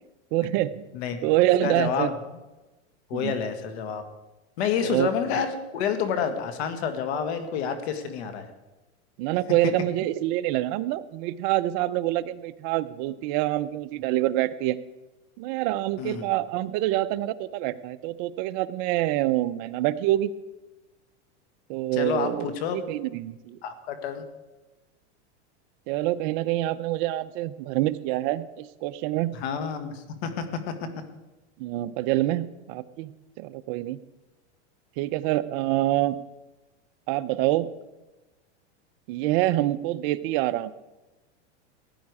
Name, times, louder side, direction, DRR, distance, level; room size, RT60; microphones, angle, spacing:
voice 1, 0.3-0.9 1.2-2.1 3.1-3.3 4.8-5.4 9.2-14.8 15.4-20.3 21.7-23.6 25.9-29.3 31.6-33.1 33.4-34.0 35.0-36.2 37.1-37.7 39.1-40.7, right 15 dB, 45° right, 13 dB, 0.7 m, -26 dB
voice 2, 0.9-1.3 1.6-2.1 3.1-4.0 4.6-8.5 16.0-16.3 21.9-22.8 23.6-24.2 29.3-30.7, left 7 dB, 65° left, 9 dB, 1.8 m, -29 dB
15.5 x 9.8 x 4.8 m, 1.1 s
supercardioid pair, 140°, 35 cm